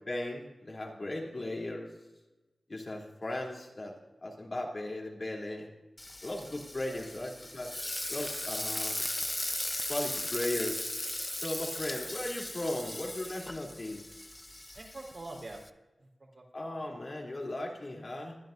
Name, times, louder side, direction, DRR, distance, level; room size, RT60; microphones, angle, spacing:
voice 1, 0.1-1.9 2.7-3.9 4.2-5.7 6.2-7.7 8.1-9.0 9.9-10.9 11.3-14.0 16.5-18.4, left 1 dB, 50° left, -2 dB, 3.2 m, -37 dB
Frying (food), 6.0-15.7, left 1 dB, 20° left, 0.6 m, -37 dB
voice 2, 14.7-15.6 16.0-16.9, right 2 dB, 55° right, -1 dB, 4.1 m, -46 dB
22.0 x 11.0 x 2.6 m, 1.1 s
wide cardioid pair, 70°, 0 cm